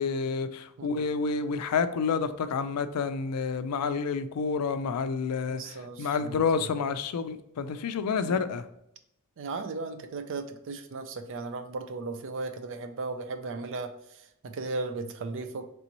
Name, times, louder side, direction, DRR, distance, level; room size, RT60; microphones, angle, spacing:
voice 1, 0.0-5.6 6.0-8.6, left 5 dB, 85° left, 0.4 m, -29 dB
voice 2, 5.5-6.7 8.2-8.4 9.4-15.7, right 3 dB, 60° right, 0.4 m, -36 dB
3.3 x 2.9 x 4.0 m
head